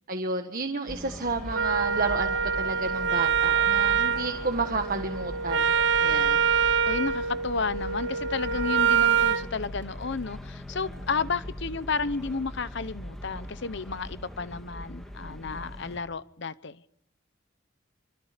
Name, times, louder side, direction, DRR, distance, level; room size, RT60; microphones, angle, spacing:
voice 1, 0.1-5.7 6.0-6.4, right 3 dB, 45° right, 1.5 m, -31 dB
French Quarter Bourbon walk, 0.9-16.0, equal, ahead, 2.1 m, -40 dB
Wind instrument woodwind instrument, 1.5-9.5, right 7 dB, 70° right, 1.3 m, -25 dB
voice 2, 6.9-16.8, left 4 dB, 65° left, 0.9 m, -32 dB
26.0 x 25.5 x 5.2 m
head